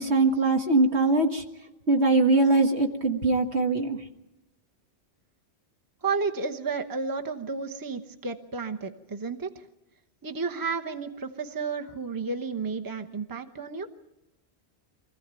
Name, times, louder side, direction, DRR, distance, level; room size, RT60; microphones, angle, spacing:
voice 1, 0.0-1.4 1.9-4.0, right 3 dB, 70° right, 3 dB, 2.0 m, -22 dB
voice 2, 6.0-9.6 10.2-13.9, right 4 dB, 20° right, 6 dB, 0.9 m, -32 dB
24.5 x 15.5 x 9.0 m, 0.94 s
omnidirectional pair, 1.2 m